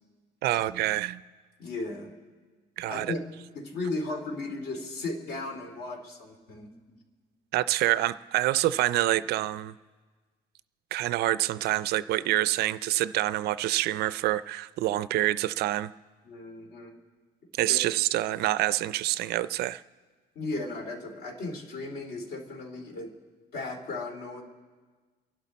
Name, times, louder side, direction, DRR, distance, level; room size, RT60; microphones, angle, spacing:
voice 1, 0.4-1.2 2.8-3.1 7.5-9.7 10.9-15.9 17.6-19.8, right 15 dB, 65° right, 16 dB, 0.4 m, -27 dB
voice 2, 1.6-2.1 2.9-3.2 3.5-7.0 16.2-17.0 17.6-17.8 20.3-23.1 23.5-24.4, left 2 dB, 60° left, 3 dB, 2.5 m, -36 dB
29.5 x 11.5 x 4.1 m, 1.4 s
cardioid pair, 170°, 18 cm